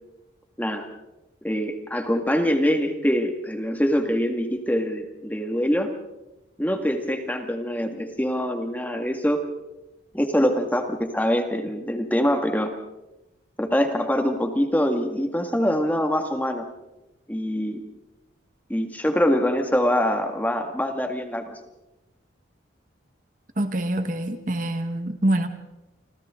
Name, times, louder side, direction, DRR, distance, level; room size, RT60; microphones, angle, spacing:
voice 1, 1.4-5.9 6.6-9.4 10.1-12.7 13.6-16.7 17.3-17.8 18.7-21.6, equal, 10° left, 5 dB, 1.9 m, -24 dB
voice 2, 23.6-25.5, right 1 dB, 45° right, 8 dB, 1.5 m, -25 dB
30.0 x 26.0 x 3.8 m, 0.96 s
head